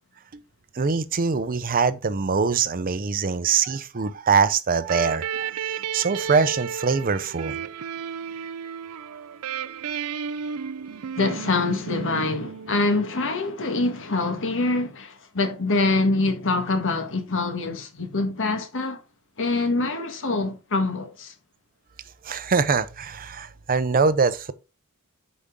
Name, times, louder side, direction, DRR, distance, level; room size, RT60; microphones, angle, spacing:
voice 1, 0.7-5.5 5.9-7.6 22.2-24.5, right 5 dB, 40° right, 0.6 m, -23 dB
sound 1, 4.8-13.3, right 7 dB, 85° right, 0.5 m, -33 dB
voice 2, 11.0-19.0 19.4-21.3, left 3 dB, 60° left, 1.4 m, -25 dB
8.3 x 5.2 x 3.6 m
head